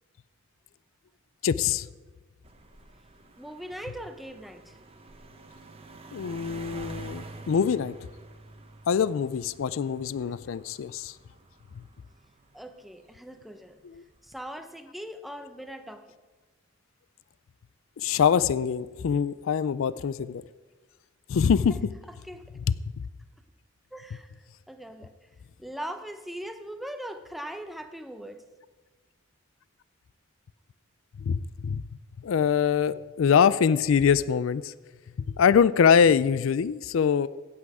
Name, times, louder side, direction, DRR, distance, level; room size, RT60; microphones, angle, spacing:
voice 1, 1.4-1.9 6.1-7.9 8.9-11.1 13.9-14.0 18.0-20.4 21.3-21.8 31.2-31.8 32.2-34.7 35.4-37.3, left 7 dB, 70° left, 17 dB, 0.4 m, -23 dB
sound 1, 2.4-13.2 13.9-14.4, right 2 dB, 25° right, 1.0 m, -47 dB
voice 2, 3.4-4.8 12.5-13.8 14.2-16.1 21.7-21.8 22.1-22.5 23.9-25.3 25.6-28.4, equal, ahead, 8 dB, 0.7 m, -40 dB
16.0 x 8.5 x 4.8 m, 1.3 s
head